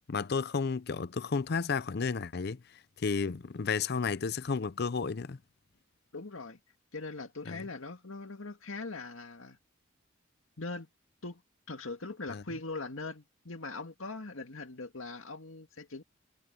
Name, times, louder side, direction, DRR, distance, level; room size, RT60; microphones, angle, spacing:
voice 1, 0.1-5.4 7.5-7.6 12.3-12.4, left 5 dB, 55° left, 0.5 m, -32 dB
voice 2, 6.1-6.6 6.9-9.6 10.6-10.9 11.2-11.4 11.7-16.0, left 3 dB, 85° left, 2.0 m, -41 dB
head